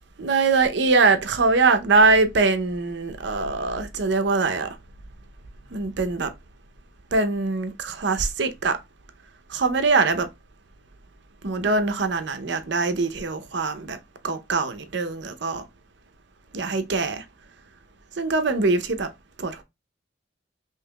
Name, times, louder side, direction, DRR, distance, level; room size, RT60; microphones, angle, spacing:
voice 1, 0.2-4.8 5.7-6.3 7.1-8.8 9.5-10.3 11.4-14.0 14.2-15.6 16.5-17.2 18.2-19.1 19.4-19.6, right 3 dB, 60° right, 0.6 m, -22 dB
5.4 x 2.9 x 2.2 m
head